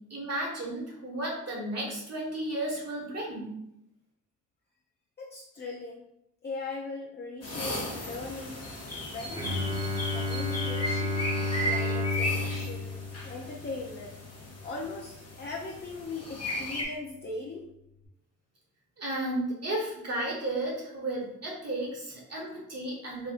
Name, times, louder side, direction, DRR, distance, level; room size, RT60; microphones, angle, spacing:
voice 1, 0.1-3.5 19.0-23.3, right 1 dB, 50° right, -3 dB, 1.5 m, -33 dB
voice 2, 5.2-6.1 6.4-8.7 9.1-9.8 10.1-11.2 11.6-14.1 14.6-17.6, left 3 dB, 30° left, -2 dB, 0.5 m, -39 dB
sound 1, 7.4-16.8, left 1 dB, 50° left, 0.9 m, -36 dB
Bowed string instrument, 9.3-15.0, left 3 dB, 15° right, 1.0 m, -32 dB
3.5 x 2.5 x 2.5 m, 0.80 s
cardioid pair, 55°, 32 cm